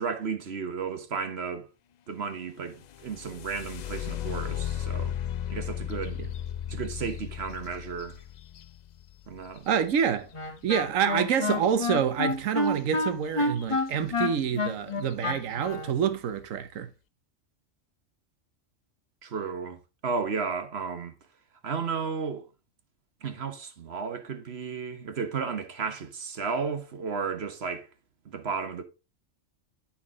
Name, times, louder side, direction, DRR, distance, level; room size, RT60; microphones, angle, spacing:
voice 1, 0.0-1.7 2.1-5.1 5.5-6.2 6.7-8.2 9.3-9.7 19.2-21.1 21.6-22.5 23.2-27.9 28.2-28.8, right 5 dB, 55° right, 1.3 m, -33 dB
sound 1, 2.8-10.6 12.7-12.8 13.2-13.8 14.4-14.5 15.0-15.3, left 10 dB, 85° left, 0.3 m, -36 dB
voice 2, 9.7-10.3 10.6-16.9, right 8 dB, 90° right, 1.3 m, -27 dB
Wind instrument woodwind instrument, 10.3-15.9, left 2 dB, 25° left, 1.0 m, -29 dB
8.8 x 5.8 x 3.6 m
omnidirectional pair, 1.3 m